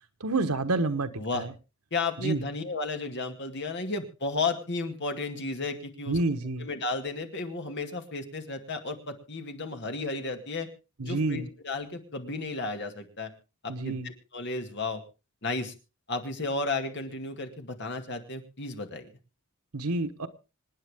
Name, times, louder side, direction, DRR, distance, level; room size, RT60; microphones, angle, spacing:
voice 1, 0.2-1.5 2.2-2.4 6.1-6.7 11.0-11.5 13.7-14.1 19.7-20.3, right 2 dB, 90° right, 10 dB, 1.2 m, -28 dB
voice 2, 1.2-1.5 1.9-6.2 6.6-10.7 11.0-13.3 13.6-15.0 15.4-15.7 16.1-19.1, left 3 dB, 50° left, 5 dB, 2.2 m, -33 dB
26.5 x 9.4 x 3.6 m, 0.31 s
head